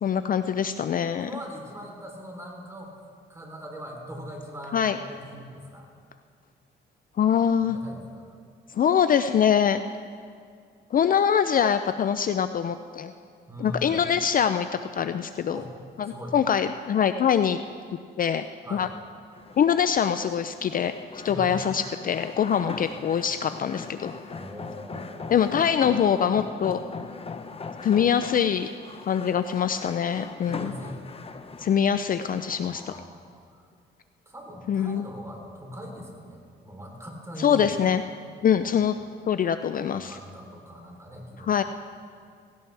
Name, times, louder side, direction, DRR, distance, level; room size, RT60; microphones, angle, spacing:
voice 1, 0.0-1.3 4.7-5.0 7.2-7.8 8.7-9.8 10.9-13.1 13.6-14.7 14.9-15.6 16.0-17.6 18.2-18.4 18.7-18.9 19.6-20.9 21.2-24.1 25.3-26.8 27.8-28.7 29.1-30.7 31.6-32.9 34.7-35.1 37.4-38.0 38.4-39.0 39.2-40.2 41.4-41.6, left 8 dB, 45° left, 10 dB, 0.4 m, -23 dB
voice 2, 1.2-2.9 3.3-5.9 7.6-8.3 13.5-14.0 15.5-15.8 16.0-16.4 18.6-18.9 21.3-21.6 22.5-23.2 24.3-25.7 30.5-31.0 32.6-33.6 34.3-38.0 38.6-38.8 39.9-41.6, equal, 15° right, 0 dB, 3.5 m, -41 dB
sound 1, 19.3-33.1, left 4 dB, 30° left, 0.8 m, -40 dB
17.5 x 17.0 x 3.4 m, 2.2 s
cardioid pair, 90°, 20 cm